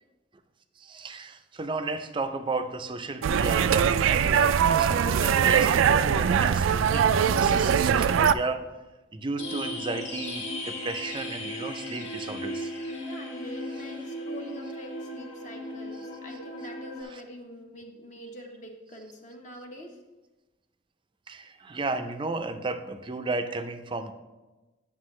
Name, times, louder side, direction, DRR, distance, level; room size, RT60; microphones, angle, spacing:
voice 1, 0.8-7.1 7.4-8.6 9.1-12.7 17.1-17.2 21.3-24.1, right 3 dB, 25° right, 8 dB, 0.4 m, -33 dB
sound 1, 3.2-8.3, right 7 dB, 90° right, 0.3 m, -22 dB
sound 2, 9.4-17.0, left 1 dB, 70° left, 1.6 m, -36 dB
voice 2, 13.0-20.0, equal, 40° left, 2 dB, 0.9 m, -44 dB
9.4 x 6.7 x 3.2 m, 1.1 s
head